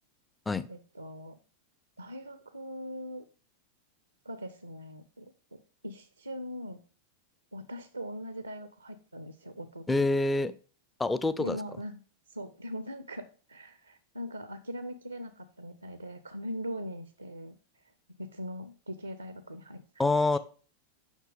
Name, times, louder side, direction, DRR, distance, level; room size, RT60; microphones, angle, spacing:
voice 1, 0.7-1.4 2.0-3.2 4.2-6.8 7.5-10.0 11.4-12.0 12.3-17.5 18.2-19.8, equal, 85° right, 0.5 m, -41 dB
voice 2, 9.9-10.5 11.0-11.6 20.0-20.4, left 2 dB, 10° left, 0.4 m, -26 dB
7.3 x 5.8 x 3.4 m
figure-of-eight pair, 90°, 0 cm